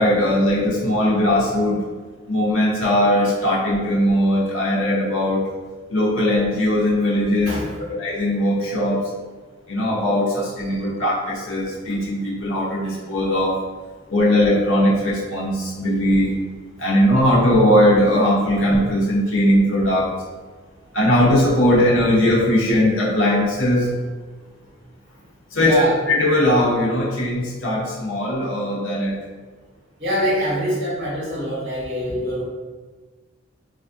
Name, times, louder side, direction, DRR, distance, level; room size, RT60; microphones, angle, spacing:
voice 1, 0.0-1.8 2.3-5.5 5.9-7.5 7.9-9.1 9.7-13.6 14.1-16.3 16.8-20.1 20.9-23.9 25.5-25.8 26.1-29.2, left 1 dB, 85° left, -5 dB, 0.9 m, -19 dB
voice 2, 7.4-7.9 25.6-26.0 30.0-32.4, equal, 60° right, -8 dB, 1.5 m, -24 dB
3.4 x 2.4 x 2.5 m, 1.4 s
head